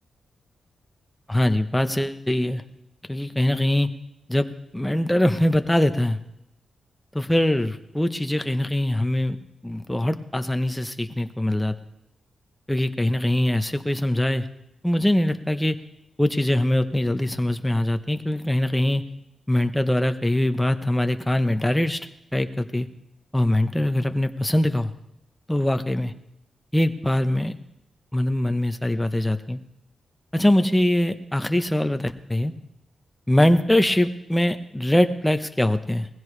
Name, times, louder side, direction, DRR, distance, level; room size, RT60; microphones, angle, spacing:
voice 1, 1.3-2.6 3.1-3.9 4.3-4.5 4.7-6.2 7.1-9.4 9.6-11.7 12.7-14.5 14.8-15.8 16.2-19.0 19.5-22.0 22.3-22.9 23.3-24.9 25.5-26.1 26.7-27.5 28.1-29.6 30.3-32.5 33.3-36.1, left 1 dB, 5° left, 8 dB, 0.9 m, -22 dB
20.0 x 15.5 x 3.3 m, 0.83 s
wide cardioid pair, 110°, 0 cm